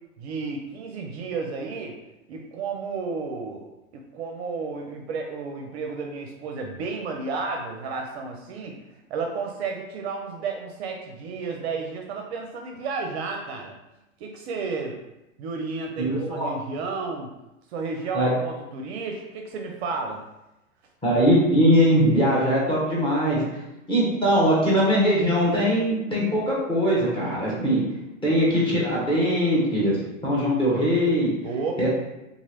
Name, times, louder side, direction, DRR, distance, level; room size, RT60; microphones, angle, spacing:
voice 1, 0.2-1.9 2.3-3.7 3.9-8.7 9.1-13.7 14.2-15.0 15.4-17.3 17.7-20.2 31.4-31.9, right 4 dB, 55° right, 2 dB, 0.5 m, -32 dB
voice 2, 16.0-16.5 18.1-18.3 21.0-23.4 23.9-27.8 28.2-31.3 31.8-31.9, equal, 10° left, -7 dB, 1.1 m, -21 dB
2.9 x 2.6 x 2.8 m, 0.92 s
hypercardioid pair, 105°, 40 cm